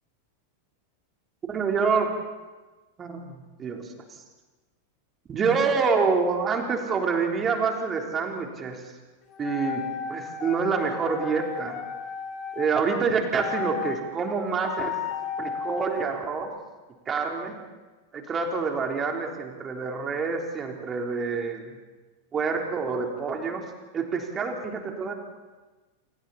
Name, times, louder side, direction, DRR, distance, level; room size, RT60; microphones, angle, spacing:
voice 1, 1.5-2.1 3.0-3.9 5.3-8.8 9.4-9.8 10.1-11.8 12.5-14.9 15.4-16.5 17.1-17.6 18.1-21.6 22.3-23.6 23.9-25.1, right 5 dB, 25° right, 2 dB, 3.8 m, -27 dB
sound 1, 9.3-12.7 13.4-14.0 14.5-16.1, left 7 dB, 30° left, 3.6 m, -34 dB
29.0 x 26.0 x 4.3 m, 1.2 s
figure-of-eight pair, 90°, 0 cm